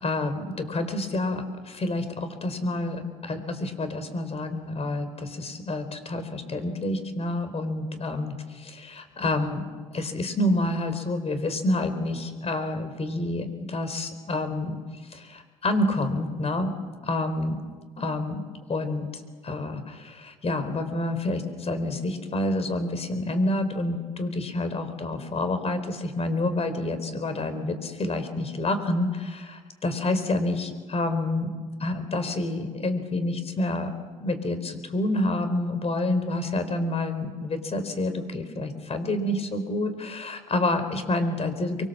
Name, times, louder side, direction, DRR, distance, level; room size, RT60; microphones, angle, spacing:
voice 1, 0.0-9.7 9.9-14.8 15.1-16.7 17.0-17.6 18.0-18.4 18.7-19.1 19.4-31.5 31.8-33.9 34.2-41.9, left 2 dB, 35° left, 9 dB, 4.3 m, -28 dB
24.5 x 23.5 x 7.5 m, 1.4 s
hypercardioid pair, 75°, 18 cm